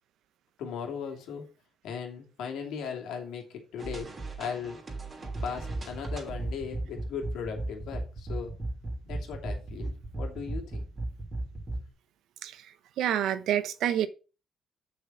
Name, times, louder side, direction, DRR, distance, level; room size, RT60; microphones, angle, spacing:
voice 1, 0.6-1.4 1.8-4.1 4.4-4.8 5.4-8.5 9.0-10.8, left 6 dB, 85° left, 2.7 m, -37 dB
sound 1, 3.8-11.8, right 2 dB, 35° right, 3.0 m, -36 dB
voice 2, 13.0-14.1, right 11 dB, 80° right, 0.9 m, -27 dB
7.1 x 6.2 x 5.5 m
cardioid pair, 90°, 0 cm